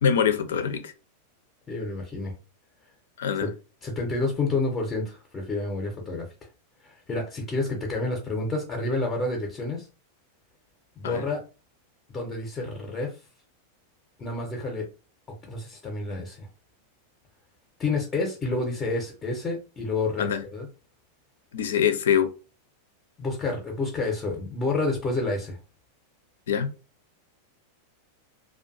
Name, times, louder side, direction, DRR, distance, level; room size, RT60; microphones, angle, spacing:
voice 1, 0.0-0.9 3.2-3.5 11.0-11.2 20.2-20.4 21.5-22.3 26.5-26.7, left 8 dB, 60° left, 0.4 m, -24 dB
voice 2, 1.7-2.3 3.4-3.5 3.8-6.3 6.8-9.8 11.0-11.4 12.1-13.1 14.2-14.9 15.4-16.5 17.8-20.7 23.2-25.6, left 3 dB, 25° left, 0.7 m, -29 dB
2.5 x 2.3 x 2.5 m
figure-of-eight pair, 90°, 0 cm